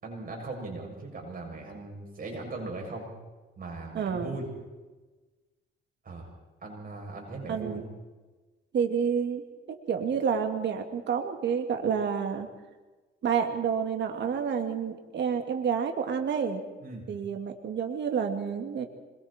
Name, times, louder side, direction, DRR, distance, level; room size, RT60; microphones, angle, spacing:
voice 1, 0.0-3.1 3.6-4.5 6.0-6.3 6.6-7.8 16.8-17.1, right 2 dB, 45° right, 1 dB, 7.5 m, -39 dB
voice 2, 3.9-4.3 7.5-7.8 8.7-12.5 13.2-16.6 17.1-18.8, right 7 dB, 65° right, 5 dB, 2.3 m, -29 dB
26.0 x 22.5 x 4.5 m, 1.2 s
cardioid pair, 90°, 20 cm